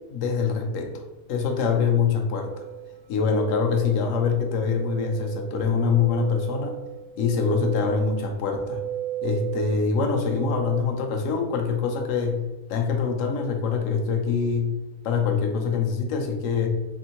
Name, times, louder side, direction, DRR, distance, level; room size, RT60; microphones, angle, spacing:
voice 1, 0.1-0.9 1.3-2.5 3.1-6.8 7.2-8.8 9.2-12.4 12.7-14.7 15.0-16.7, left 5 dB, 65° left, 4 dB, 0.9 m, -24 dB
sound 1, 2.3-10.8, right 12 dB, 75° right, 0.4 m, -36 dB
3.5 x 3.4 x 2.8 m, 1.1 s
omnidirectional pair, 1.5 m